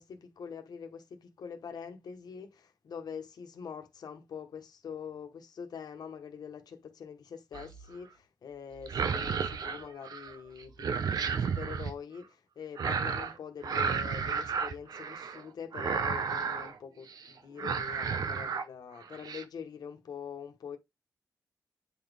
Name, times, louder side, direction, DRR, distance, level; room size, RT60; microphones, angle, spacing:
voice 1, 0.0-20.8, left 7 dB, 75° left, 1.3 m, -44 dB
sound 1, 7.5-7.9 8.8-10.3 10.6-11.9 12.8-13.3 13.6-15.4 15.7-16.7 17.1-17.3 17.6-18.6 19.0-19.4, right 6 dB, 70° right, 0.7 m, -32 dB
9.0 x 4.1 x 3.4 m
wide cardioid pair, 155°, 7 cm